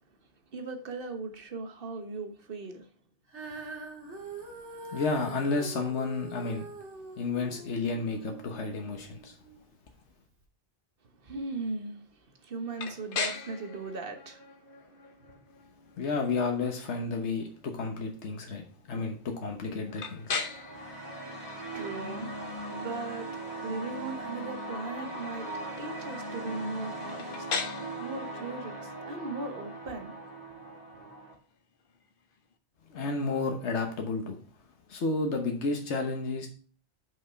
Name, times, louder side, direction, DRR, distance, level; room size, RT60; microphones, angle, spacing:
voice 1, 0.5-2.9 11.2-14.6 15.2-15.4 21.1-25.5 25.8-27.5 27.9-30.1 30.9-31.0, right 3 dB, 55° right, 1.3 m, -38 dB
Female singing, 3.3-9.6 10.3-10.4, right 3 dB, 90° right, 2.2 m, -44 dB
voice 2, 4.9-6.7 7.2-9.4 16.0-18.6 18.9-20.4 32.9-34.4 34.9-36.5, left 3 dB, 80° left, 1.4 m, -31 dB
sound 1, 12.8-32.5, left 5 dB, 55° left, 1.0 m, -42 dB
sound 2, 20.3-31.3, right 1 dB, 40° right, 2.2 m, -39 dB
6.0 x 5.4 x 5.6 m
omnidirectional pair, 1.1 m